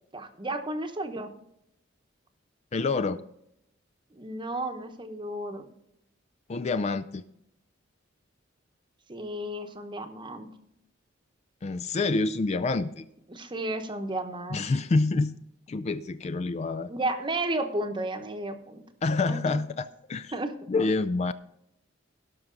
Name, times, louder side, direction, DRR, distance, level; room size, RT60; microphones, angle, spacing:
voice 1, 0.1-1.3 4.1-5.7 9.1-10.5 13.3-14.6 16.9-18.8 19.2-19.6 20.3-20.6, right 1 dB, 25° right, 7 dB, 0.9 m, -33 dB
voice 2, 2.7-3.2 6.5-7.2 11.6-13.1 14.5-15.4 15.7-16.9 19.0-20.3 20.7-21.3, left 3 dB, 35° left, 11 dB, 0.3 m, -27 dB
17.5 x 6.0 x 3.8 m, 0.78 s
head